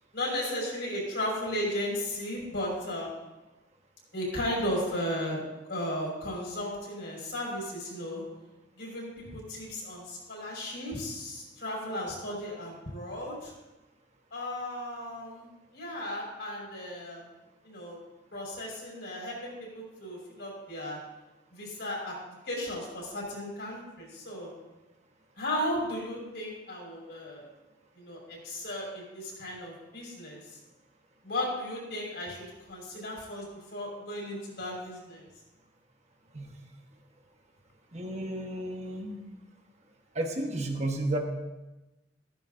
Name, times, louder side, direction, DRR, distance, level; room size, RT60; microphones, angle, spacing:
voice 1, 0.1-3.2 4.1-8.2 8.8-13.5 14.3-17.2 17.6-18.0 18.3-21.0 21.5-22.1 22.4-24.6 25.4-27.4 27.9-30.6 31.2-35.3, left 1 dB, 65° left, -3 dB, 5.1 m, -35 dB
voice 2, 37.9-39.1 40.1-41.2, right 1 dB, 35° right, 2 dB, 1.3 m, -32 dB
14.5 x 14.0 x 2.7 m, 1.0 s
head